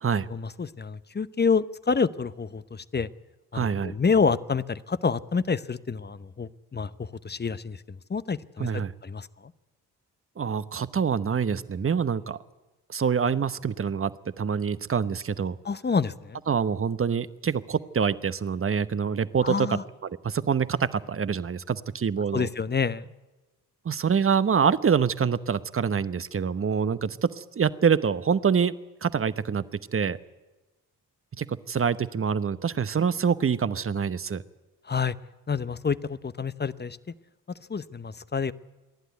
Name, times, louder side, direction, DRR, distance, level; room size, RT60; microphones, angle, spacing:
voice 1, 0.3-3.1 3.5-7.8 8.1-9.3 15.6-16.4 19.4-19.8 22.3-23.0 34.9-35.1 35.5-37.0 37.7-38.5, left 5 dB, 25° left, 16 dB, 0.8 m, -28 dB
voice 2, 3.5-3.9 8.6-8.9 10.4-12.4 12.9-15.6 16.5-22.5 23.8-28.8 29.0-29.6 29.9-30.2 31.3-34.4, right 6 dB, 30° right, 15 dB, 1.0 m, -26 dB
27.5 x 11.5 x 9.3 m, 1.1 s
hypercardioid pair, 45°, 41 cm